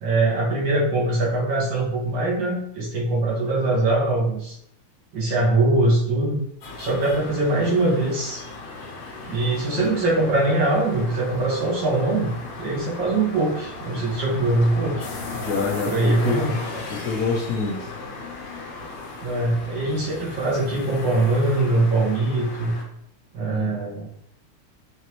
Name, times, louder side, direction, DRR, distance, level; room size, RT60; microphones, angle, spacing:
voice 1, 0.0-4.6 5.1-6.4 6.8-8.4 9.3-15.0 15.8-16.6 19.2-22.8 23.3-24.1, right 2 dB, 60° right, -4 dB, 1.7 m, -22 dB
sound 1, 6.6-22.8, left 3 dB, 65° left, 1.5 m, -36 dB
voice 2, 15.3-16.4 16.9-17.9 23.4-23.8, left 4 dB, 85° left, -3 dB, 0.7 m, -26 dB
5.1 x 2.6 x 2.9 m, 0.72 s
omnidirectional pair, 2.4 m